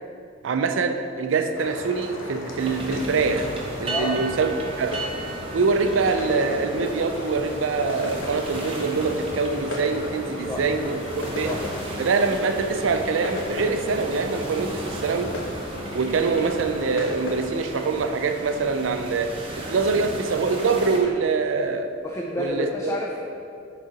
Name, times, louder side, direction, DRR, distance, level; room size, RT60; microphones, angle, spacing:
voice 1, 0.4-3.5 3.8-5.0 5.5-11.6 12.0-15.3 15.9-19.3 19.7-21.9 22.4-22.9, right 4 dB, 75° right, 7 dB, 0.4 m, -24 dB
sound 1, 1.5-17.4, left 1 dB, 75° left, 0.8 m, -36 dB
sound 2, 2.6-21.0, right 1 dB, 30° right, 0.7 m, -36 dB
voice 2, 3.8-4.2 10.5-10.7 11.4-11.6 22.0-23.2, left 2 dB, 15° left, -1 dB, 0.3 m, -29 dB
sound 3, 8.1-18.2 18.9-19.2 19.7-19.9 20.7-21.1 21.4-21.5 22.4-22.5, left 1 dB, 45° left, 0.9 m, -43 dB
6.3 x 3.9 x 4.0 m, 2.5 s
head